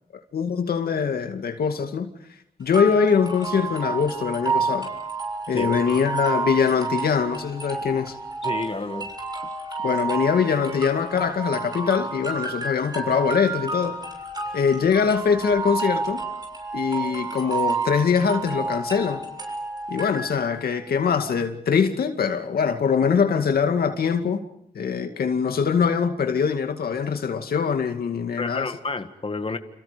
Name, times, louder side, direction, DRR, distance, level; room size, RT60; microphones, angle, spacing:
voice 1, 0.3-2.1 2.6-4.9 5.5-8.2 9.8-14.0 14.5-16.2 16.7-19.2 19.9-24.4 24.7-28.7, left 6 dB, 90° left, 2.3 m, -23 dB
sound 1, 2.7-20.7, right 4 dB, 25° right, 7.0 m, -30 dB
voice 2, 8.4-9.1 28.4-29.6, left 3 dB, 40° left, 1.9 m, -30 dB
30.0 x 28.0 x 5.2 m
cardioid pair, 70°, 15 cm